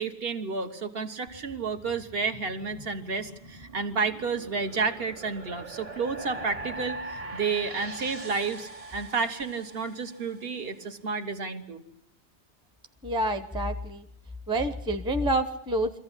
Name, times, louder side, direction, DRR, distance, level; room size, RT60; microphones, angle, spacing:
voice 1, 0.0-11.8, right 4 dB, 60° right, 7 dB, 1.7 m, -31 dB
sound 1, 1.3-10.6, right 2 dB, 35° right, 1.0 m, -42 dB
voice 2, 13.0-14.1 14.5-16.0, right 1 dB, 5° right, 8 dB, 0.9 m, -28 dB
23.5 x 15.0 x 9.9 m, 0.78 s
omnidirectional pair, 1.2 m